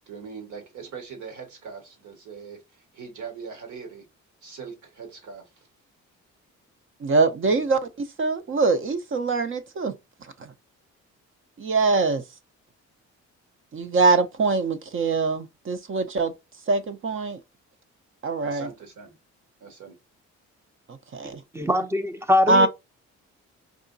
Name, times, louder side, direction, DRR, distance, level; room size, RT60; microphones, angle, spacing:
voice 1, 0.1-2.6 2.9-4.1 4.4-5.7 7.5-7.6 18.4-19.2 19.6-20.0, right 5 dB, 75° right, 1.7 m, -41 dB
voice 2, 7.0-9.9 10.4-10.5 11.6-12.2 13.7-16.3 16.7-17.4 18.2-18.7 20.9-21.4 22.5-22.7, right 3 dB, 45° right, 0.8 m, -23 dB
voice 3, 21.5-22.7, left 1 dB, 10° right, 0.6 m, -22 dB
4.8 x 2.8 x 2.6 m
cardioid pair, 90°, 30 cm